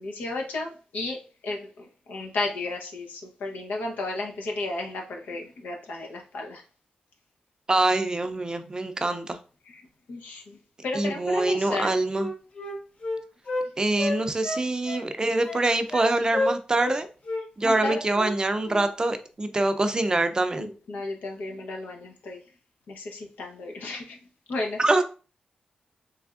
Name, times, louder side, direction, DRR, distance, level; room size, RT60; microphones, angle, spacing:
voice 1, 0.0-6.6 9.7-9.8 10.1-10.6 10.8-11.9 17.6-18.0 20.6-22.4 22.9-24.2 24.5-24.8, left 2 dB, 90° left, 0.8 m, -33 dB
voice 2, 7.7-9.4 10.9-12.3 13.8-17.1 17.6-20.7 24.8-25.0, right 2 dB, 25° right, 0.4 m, -24 dB
Wind instrument woodwind instrument, 11.7-13.7 14.0-15.1 15.4-16.1 16.3-17.0 17.2-17.4 17.7-18.4 18.6-18.8, left 2 dB, 50° left, 0.8 m, -31 dB
3.4 x 3.2 x 2.4 m
cardioid pair, 80°, 3 cm